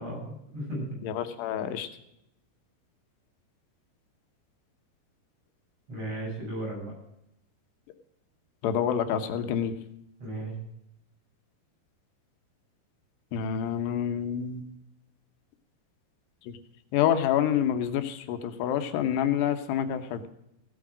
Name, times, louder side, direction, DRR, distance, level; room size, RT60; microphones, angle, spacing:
voice 1, 0.0-0.9 5.9-6.9 10.2-10.5, right 1 dB, 35° right, -3 dB, 8.4 m, -35 dB
voice 2, 1.0-1.9 8.6-9.8 13.3-14.7 16.5-16.6 16.9-20.3, left 9 dB, 90° left, 8 dB, 3.3 m, -27 dB
16.0 x 9.9 x 6.3 m, 0.79 s
omnidirectional pair, 4.7 m